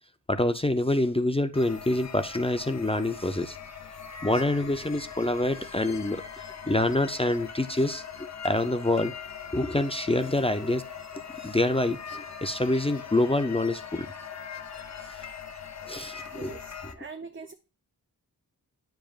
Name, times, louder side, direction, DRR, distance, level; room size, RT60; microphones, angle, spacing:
voice 1, 0.3-3.6 4.2-6.2 6.7-9.1 9.5-10.8 11.4-14.1 15.9-16.6, left 1 dB, 15° left, 0.5 m, -26 dB
sound 1, 1.5-17.0, left 7 dB, 45° left, 0.8 m, -41 dB
voice 2, 16.3-17.5, right 5 dB, 30° right, 0.6 m, -43 dB
10.5 x 5.0 x 2.4 m
wide cardioid pair, 105°, 39 cm